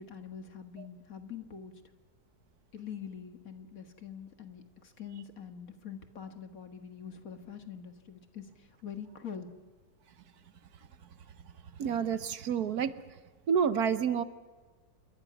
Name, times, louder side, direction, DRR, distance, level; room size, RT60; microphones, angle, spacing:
voice 1, 0.0-1.8 2.7-9.5, left 7 dB, 55° left, 7 dB, 2.1 m, -44 dB
voice 2, 11.8-12.9 13.5-14.2, right 7 dB, 65° right, 13 dB, 1.4 m, -28 dB
28.0 x 22.5 x 6.2 m, 1.4 s
omnidirectional pair, 1.8 m